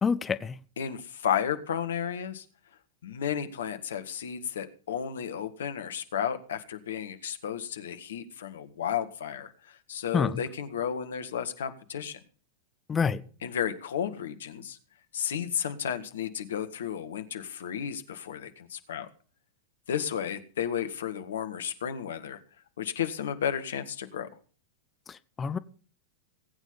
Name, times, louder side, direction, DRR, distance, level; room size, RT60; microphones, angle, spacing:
voice 1, 0.0-0.6 10.1-10.4 12.9-13.2 25.1-25.6, left 6 dB, 20° left, 0.7 m, -27 dB
voice 2, 0.8-2.4 3.0-12.2 13.4-14.8 15.1-19.1 19.9-22.4 22.8-24.3, left 8 dB, 65° left, 1.7 m, -33 dB
19.5 x 9.1 x 5.4 m
figure-of-eight pair, 90°, 0 cm